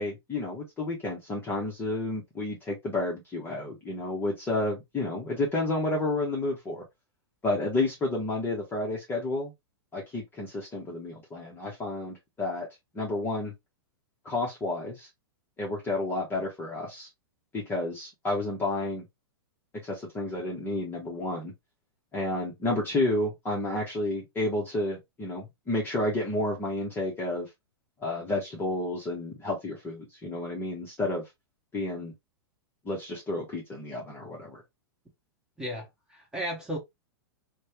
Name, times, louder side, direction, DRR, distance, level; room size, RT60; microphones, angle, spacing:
voice 1, 0.0-6.8 7.4-9.5 9.9-12.7 12.9-13.5 14.2-15.1 15.6-17.1 17.5-19.0 19.8-21.5 22.1-27.5 28.0-31.2 31.7-32.1 32.9-34.6, left 2 dB, 15° left, 0.8 m, -31 dB
voice 2, 35.6-36.8, equal, 5° right, 1.3 m, -34 dB
3.1 x 2.2 x 2.8 m
hypercardioid pair, 130°, 13 cm